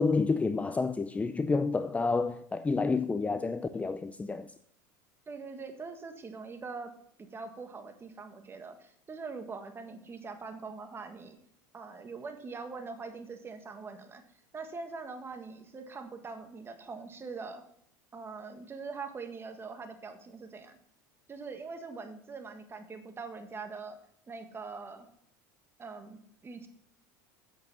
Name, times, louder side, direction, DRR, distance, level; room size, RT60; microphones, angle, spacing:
voice 1, 0.0-4.5, left 4 dB, 15° left, 0.5 m, -29 dB
voice 2, 5.3-6.9 7.2-11.4 11.7-14.2 14.5-17.6 18.1-20.8 21.3-24.0 24.3-25.1 25.8-26.7, right 4 dB, 25° right, 1.7 m, -43 dB
8.2 x 7.8 x 5.6 m
hypercardioid pair, 90°, 10 cm